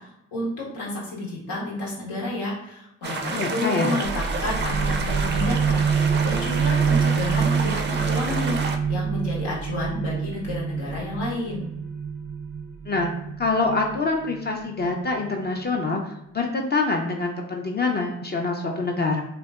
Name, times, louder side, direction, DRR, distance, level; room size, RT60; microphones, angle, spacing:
voice 1, 0.0-11.7, left 2 dB, 85° left, -5 dB, 0.9 m, -31 dB
sound 1, 3.0-8.8, right 4 dB, 35° right, 0.4 m, -30 dB
voice 2, 3.3-4.0 12.9-13.1 13.4-16.0 16.3-19.2, left 3 dB, 30° left, 1 dB, 0.4 m, -25 dB
sound 2, 4.0-15.4, right 6 dB, 85° right, 0.5 m, -26 dB
2.6 x 2.1 x 2.2 m, 0.83 s
supercardioid pair, 45°, 33 cm